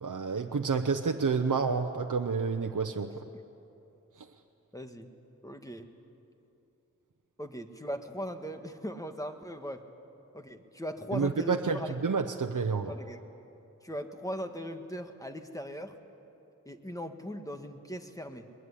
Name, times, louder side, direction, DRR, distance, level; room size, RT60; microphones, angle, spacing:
voice 1, 0.0-3.1 11.1-12.9, right 5 dB, 85° right, 5 dB, 0.9 m, -29 dB
voice 2, 4.7-5.1 5.4-5.9 7.4-9.8 10.3-11.9 12.8-13.2 13.8-15.9 16.6-18.5, equal, 10° left, 6 dB, 1.7 m, -39 dB
21.5 x 21.0 x 10.0 m, 2.8 s
wide cardioid pair, 60°, 30 cm